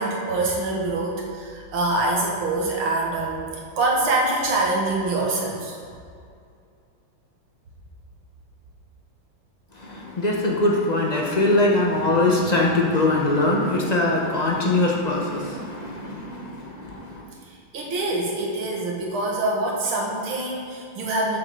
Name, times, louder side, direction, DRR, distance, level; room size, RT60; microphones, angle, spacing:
voice 1, 0.0-3.5 3.8-5.8 17.7-21.4, right 2 dB, 80° right, -2 dB, 2.4 m, -25 dB
voice 2, 9.8-17.3, left 2 dB, 40° left, -2 dB, 0.6 m, -22 dB
7.4 x 6.1 x 6.6 m, 2.4 s
omnidirectional pair, 2.3 m